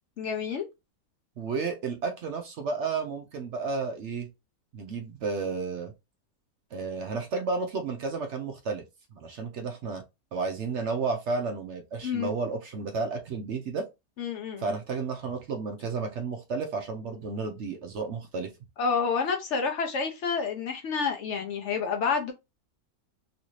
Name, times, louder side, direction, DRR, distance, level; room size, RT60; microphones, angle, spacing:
voice 1, 0.2-0.7 12.0-12.3 14.2-14.7 18.8-22.3, left 5 dB, 65° left, 0.8 m, -29 dB
voice 2, 1.4-4.3 4.7-5.9 6.7-8.8 9.1-10.0 10.3-13.8 14.6-18.5, right 4 dB, 65° right, 0.8 m, -32 dB
3.1 x 2.6 x 3.0 m
omnidirectional pair, 1.6 m